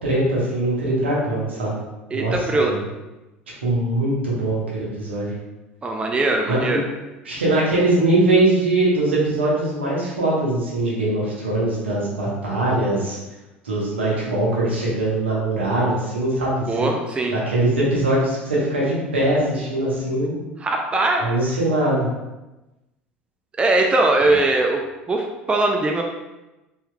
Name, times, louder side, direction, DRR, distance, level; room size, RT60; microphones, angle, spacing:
voice 1, 0.0-1.7 2.1-2.8 3.6-5.4 6.5-6.8 7.2-13.2 13.6-16.9 17.3-20.3 21.2-22.1, right 2 dB, 75° right, -5 dB, 1.1 m, -21 dB
voice 2, 2.1-2.7 5.8-6.8 16.7-17.3 20.6-21.3 23.6-24.8 25.1-26.0, right 2 dB, 15° right, 2 dB, 0.4 m, -20 dB
4.3 x 3.4 x 2.2 m, 1.0 s
figure-of-eight pair, 70°, 6 cm